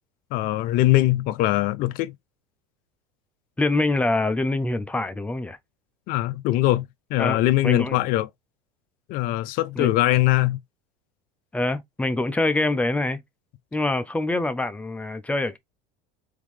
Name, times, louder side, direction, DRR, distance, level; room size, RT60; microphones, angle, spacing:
voice 1, 0.3-2.2 6.1-6.8 7.1-8.3 9.1-10.6, left 16 dB, 50° left, 0.5 m, -21 dB
voice 2, 3.6-5.6 7.2-8.0 9.8-9.9 11.5-13.2 13.7-15.6, left 2 dB, 5° left, 0.6 m, -25 dB
3.7 x 3.6 x 3.2 m
supercardioid pair, 125°, 19 cm